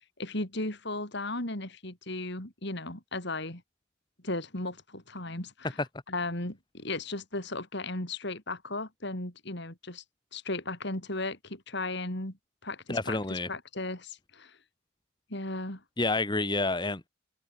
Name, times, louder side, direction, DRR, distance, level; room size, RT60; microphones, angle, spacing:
voice 1, 0.2-3.6 4.2-5.8 6.1-10.0 10.3-12.4 12.6-14.6 15.3-15.8, left 2 dB, 55° left, 4.9 m, -36 dB
voice 2, 12.9-13.5 16.0-17.1, left 2 dB, 20° left, 1.3 m, -29 dB
head